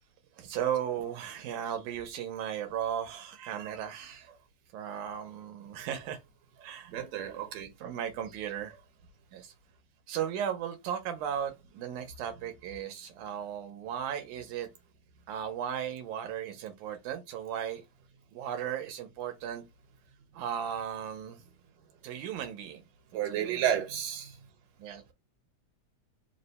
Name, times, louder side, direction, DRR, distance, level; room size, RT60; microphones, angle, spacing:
voice 1, 0.4-4.3 4.7-6.2 6.6-6.9 7.8-8.7 9.3-9.5 10.1-14.7 15.3-17.9 18.3-19.6 20.3-21.4 22.0-22.8 23.3-23.6 24.8-25.1, right 9 dB, 90° right, 2.2 m, -36 dB
voice 2, 6.9-7.7 23.1-24.3, right 10 dB, 70° right, 2.2 m, -31 dB
4.9 x 2.1 x 3.9 m
omnidirectional pair, 3.3 m